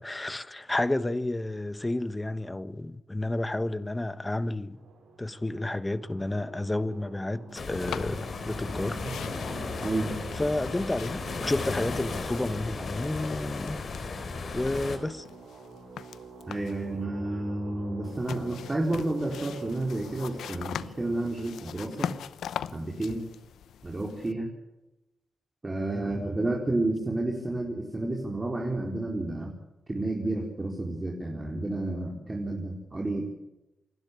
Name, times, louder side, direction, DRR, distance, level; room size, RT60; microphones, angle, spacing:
voice 1, 0.0-4.8 5.2-9.0 10.4-13.8 14.5-15.2 25.9-26.1, left 2 dB, 20° left, 1.3 m, -31 dB
sound 1, 4.7-22.8, right 3 dB, 90° right, 4.7 m, -47 dB
sound 2, 7.5-15.0, left 4 dB, 55° left, 3.8 m, -35 dB
sound 3, 7.7-8.7 8.9-12.7 13.0-14.3 14.7-16.9 18.0-24.3, left 9 dB, 90° left, 0.8 m, -41 dB
voice 2, 16.5-22.1 22.7-23.3 23.8-24.5 25.6-29.5 29.9-33.3, right 2 dB, 25° right, 4.1 m, -31 dB
27.5 x 12.0 x 8.3 m
cardioid pair, 65°, 0 cm